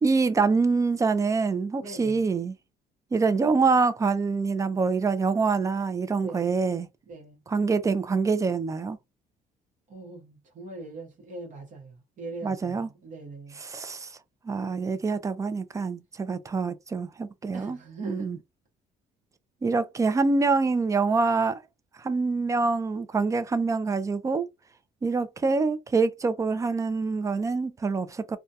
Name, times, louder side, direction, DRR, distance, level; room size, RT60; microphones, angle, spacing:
voice 1, 0.0-2.5 3.1-6.9 7.5-9.0 12.4-12.9 13.6-14.1 14.4-17.8 18.0-18.4 19.6-21.6 22.0-24.5 25.0-28.4, right 4 dB, 20° right, 0.4 m, -25 dB
voice 2, 1.8-2.2 6.2-6.6 7.1-7.4 9.9-13.6 17.5-18.4, right 2 dB, 50° right, 0.9 m, -42 dB
2.2 x 2.2 x 2.7 m
cardioid pair, 110°, 17 cm